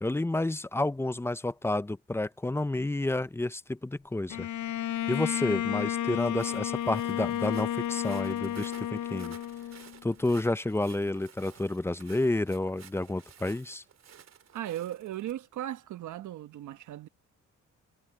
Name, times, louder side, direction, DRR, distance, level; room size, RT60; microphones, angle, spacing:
voice 1, 0.0-4.5 5.1-9.4 10.0-13.8, left 2 dB, 10° left, 0.6 m, -30 dB
Bowed string instrument, 4.3-10.1, left 11 dB, 70° left, 0.8 m, -32 dB
Walk footsteps, 6.2-15.3, right 9 dB, 60° right, 3.6 m, -54 dB
voice 2, 14.5-17.1, right 12 dB, 75° right, 1.3 m, -37 dB
cardioid pair, 90°, 30 cm